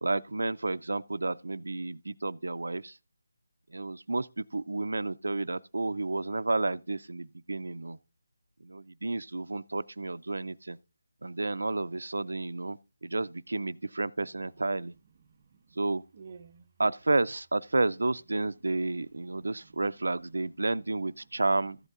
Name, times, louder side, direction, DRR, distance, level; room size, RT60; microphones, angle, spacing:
voice 1, 0.0-3.0 3.7-8.0 8.6-10.8 11.2-14.9 15.8-16.0 16.8-21.8, right 2 dB, 85° right, 0.4 m, -31 dB
voice 2, 15.2-15.8 16.1-16.7 18.6-18.8 19.1-20.1 21.2-21.4, right 5 dB, 30° right, 0.5 m, -54 dB
14.0 x 7.9 x 2.4 m
figure-of-eight pair, 175°, 0 cm